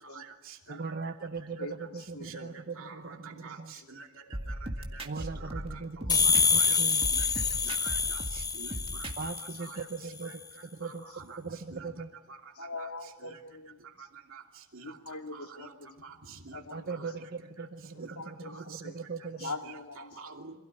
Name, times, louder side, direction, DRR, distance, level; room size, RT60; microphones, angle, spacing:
voice 1, 0.7-3.7 5.0-7.0 9.2-10.4 10.7-11.0 11.4-12.1 16.7-19.5, right 4 dB, 45° right, 6 dB, 0.8 m, -39 dB
voice 2, 1.6-2.6 3.0-3.9 4.2-4.3 5.2-5.3 6.7-6.8 7.6-7.8 8.3-8.4 9.5-9.6 11.1-11.2 12.6-14.1 14.8-16.1 16.5-17.2 18.1-19.0 19.4-20.2, left 3 dB, 80° left, 4 dB, 2.2 m, -44 dB
voice 3, 2.8-3.6 3.9-4.5 4.9-5.0 5.7-5.8 6.6-6.8 7.1-7.3 7.6-8.2 8.6-8.7 9.6-9.8 10.8-11.4 11.7-11.8 12.8-12.9 14.3-14.4 14.7-14.9 15.3-15.7 16.0-16.1 16.4-16.6 18.0-18.1 19.4-20.5, right 5 dB, 65° right, 2 dB, 2.9 m, -47 dB
sound 1, 4.3-6.7 7.0-9.4, right 1 dB, 25° right, 1.9 m, -38 dB
sound 2, 6.1-9.7, left 5 dB, 15° left, 0.8 m, -27 dB
27.0 x 16.5 x 9.9 m, 1.1 s
head